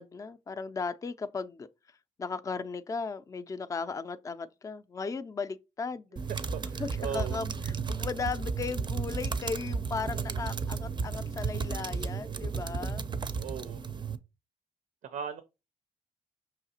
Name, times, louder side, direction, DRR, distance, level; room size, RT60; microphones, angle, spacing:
voice 1, 0.0-6.2 6.8-13.1, left 4 dB, 25° left, 0.4 m, -36 dB
sound 1, 6.2-14.2, right 5 dB, 35° right, 0.5 m, -34 dB
voice 2, 6.4-7.4 13.4-13.8 15.0-15.4, right 7 dB, 85° right, 0.5 m, -38 dB
5.6 x 2.8 x 2.8 m
cardioid pair, 90°, 14 cm